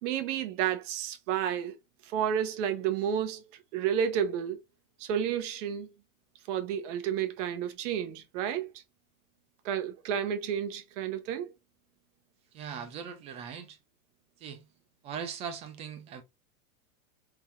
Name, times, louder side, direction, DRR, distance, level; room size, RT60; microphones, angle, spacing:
voice 1, 0.0-1.8 2.0-4.6 5.0-5.9 6.5-8.7 9.6-11.5, right 9 dB, 55° right, 1.1 m, -31 dB
voice 2, 12.5-13.8 14.4-14.6 15.0-16.2, right 7 dB, 15° right, 0.3 m, -40 dB
3.7 x 2.4 x 4.3 m
supercardioid pair, 140°, 44 cm